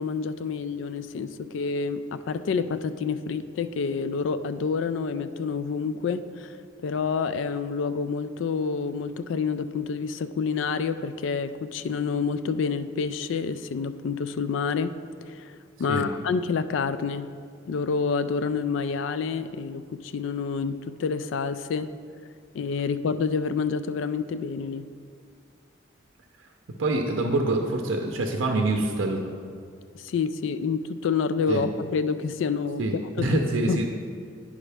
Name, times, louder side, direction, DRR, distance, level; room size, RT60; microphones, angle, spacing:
voice 1, 0.0-6.5 6.8-14.9 15.3-17.3 17.7-21.9 22.5-24.9 29.9-32.8 33.3-33.4 33.7-33.8, left 5 dB, 70° left, 12 dB, 0.3 m, -28 dB
voice 2, 26.8-29.3 31.5-31.7 32.8-33.9, right 2 dB, 85° right, 2 dB, 0.6 m, -25 dB
9.6 x 5.1 x 3.4 m, 2.2 s
head